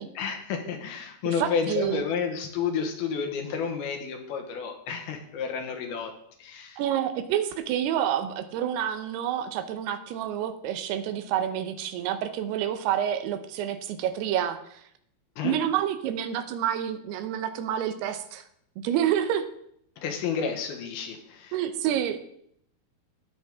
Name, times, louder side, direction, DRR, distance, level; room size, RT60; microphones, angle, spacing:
voice 1, 0.2-6.1 6.4-6.8 15.4-15.6 20.0-21.5, left 6 dB, 75° left, 3 dB, 3.0 m, -31 dB
voice 2, 1.4-2.0 6.8-14.8 15.4-18.4 18.8-19.5 21.5-22.2, right 10 dB, 85° right, 9 dB, 2.9 m, -28 dB
18.5 x 6.5 x 3.6 m, 0.72 s
omnidirectional pair, 4.5 m